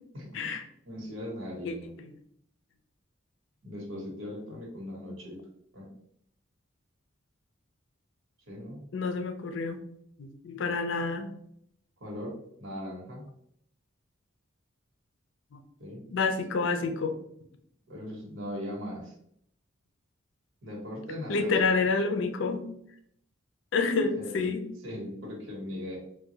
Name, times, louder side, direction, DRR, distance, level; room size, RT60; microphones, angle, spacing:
voice 1, 0.1-0.5 0.8-1.9 3.6-5.4 5.7-5.9 8.5-8.8 12.0-13.3 15.8-16.0 17.9-19.1 20.6-21.9 24.2-24.5 24.8-26.0, left 1 dB, 80° right, -3 dB, 1.1 m, -39 dB
voice 2, 8.9-9.8 10.2-11.3 15.5-15.6 16.1-17.2 21.3-22.7 23.7-24.6, left 4 dB, 70° left, 7 dB, 0.4 m, -28 dB
3.4 x 2.2 x 2.7 m, 0.69 s
head